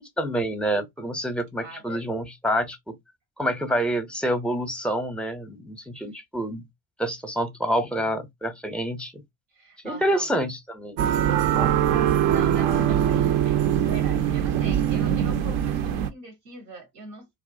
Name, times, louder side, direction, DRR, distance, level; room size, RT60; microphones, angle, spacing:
voice 1, 0.2-2.9 3.4-6.6 7.0-9.2 9.8-11.1 11.5-11.8, equal, ahead, 0.6 m, -27 dB
voice 2, 1.6-2.1 9.5-10.5 12.3-17.3, right 3 dB, 90° right, 1.0 m, -42 dB
sound 1, 11.0-16.1, right 10 dB, 70° right, 0.5 m, -22 dB
2.6 x 2.0 x 2.4 m
hypercardioid pair, 50°, 45 cm